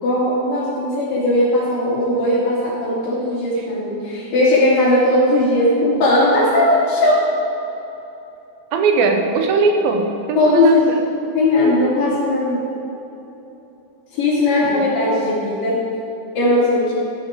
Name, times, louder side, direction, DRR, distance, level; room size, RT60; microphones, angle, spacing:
voice 1, 0.0-7.3 10.4-11.0 11.4-12.6 14.1-15.8 16.3-17.0, left 1 dB, 70° left, -11 dB, 4.4 m, -17 dB
voice 2, 8.7-11.0 14.7-14.9, right 4 dB, 80° right, 4 dB, 2.9 m, -19 dB
15.0 x 11.0 x 3.7 m, 2.9 s
omnidirectional pair, 4.1 m